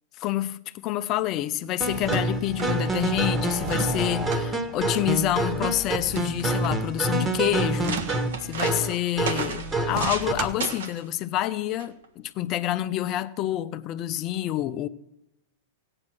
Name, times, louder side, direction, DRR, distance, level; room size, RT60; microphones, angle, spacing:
voice 1, 0.2-14.9, left 13 dB, 40° left, 0.7 m, -28 dB
sound 1, 1.8-10.5, right 2 dB, 20° right, 1.6 m, -27 dB
sound 2, 1.9-2.7 3.6-4.5 5.9-6.8 7.8-8.7 9.9-10.7, right 8 dB, 50° right, 1.2 m, -35 dB
sound 3, 5.7-5.8 6.1-6.7 7.3-7.4 7.6-10.3 10.6-11.0 11.8-12.1, right 5 dB, 70° right, 1.7 m, -33 dB
16.5 x 8.8 x 6.3 m
hypercardioid pair, 105°, 0 cm